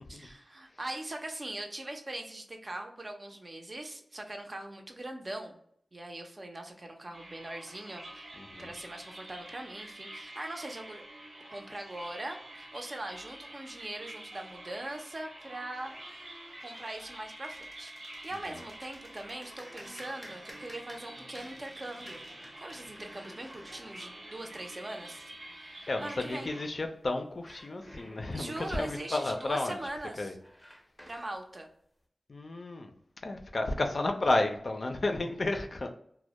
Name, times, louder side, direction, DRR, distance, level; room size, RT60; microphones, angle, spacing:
voice 1, 0.1-5.6 5.9-11.0 11.5-15.9 16.6-17.9 18.2-22.2 22.6-26.5 28.3-30.4 31.1-31.7, right 1 dB, 45° right, 4 dB, 0.5 m, -41 dB
sound 1, 7.1-26.7, right 1 dB, 70° right, 0.8 m, -48 dB
voice 2, 8.4-8.7 25.9-29.8 30.2-30.3 32.3-32.9 33.2-35.9, left 2 dB, 60° left, 5 dB, 0.4 m, -32 dB
sound 2, 15.8-26.2 27.3-31.4, equal, 15° left, 0.5 m, -54 dB
2.1 x 2.0 x 2.8 m, 0.68 s
cardioid pair, 45°, 0 cm